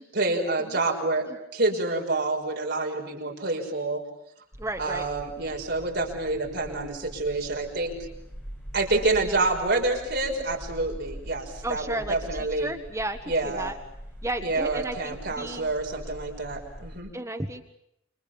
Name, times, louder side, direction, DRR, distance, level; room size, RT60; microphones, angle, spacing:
voice 1, 0.0-1.3 1.5-4.0 4.8-7.9 8.7-12.7 13.3-13.7 14.4-17.1, right 2 dB, 55° right, 1 dB, 5.9 m, -27 dB
sound 1, 4.5-17.0, equal, 10° left, 7.2 m, -43 dB
voice 2, 4.6-5.1 11.6-13.8 14.2-15.7 17.1-17.6, right 1 dB, 15° right, 5 dB, 1.4 m, -33 dB
29.5 x 26.5 x 7.1 m, 0.76 s
head